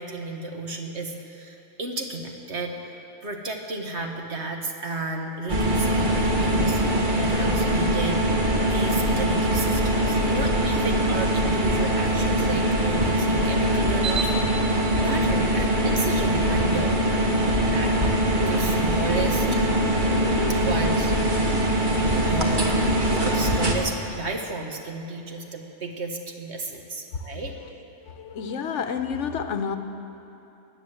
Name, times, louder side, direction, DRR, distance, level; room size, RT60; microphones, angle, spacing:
voice 1, 0.0-6.8 7.1-14.3 15.0-17.0 17.7-18.1 18.5-19.6 20.5-21.1 22.2-22.8 23.1-27.5, right 3 dB, 60° right, 2 dB, 1.7 m, -33 dB
sound 1, 5.5-23.8, right 1 dB, 40° right, 1.6 m, -22 dB
sound 2, 18.3-18.9 19.3-21.5 21.8-22.3, left 3 dB, 15° right, 4.6 m, -37 dB
voice 2, 28.0-29.8, left 6 dB, 70° left, 8 dB, 1.1 m, -29 dB
18.5 x 9.9 x 7.7 m, 2.9 s
omnidirectional pair, 1.3 m